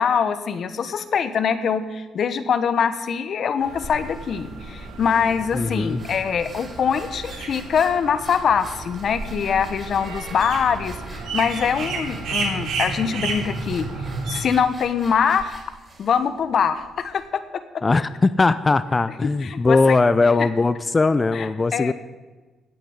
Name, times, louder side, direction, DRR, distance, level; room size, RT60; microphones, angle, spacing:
voice 1, 0.0-13.9 14.3-15.6 16.0-17.6 19.2-20.0 20.4-20.5 21.3-21.9, left 7 dB, 60° left, 12 dB, 1.3 m, -23 dB
sound 1, 3.6-14.4, right 3 dB, 85° right, 3.3 m, -32 dB
sound 2, 3.8-17.3, right 2 dB, 30° right, 4.9 m, -43 dB
voice 2, 5.5-6.0 17.8-21.9, left 3 dB, 25° left, 14 dB, 0.6 m, -19 dB
17.5 x 6.9 x 9.6 m, 1.2 s
cardioid pair, 90°, 0 cm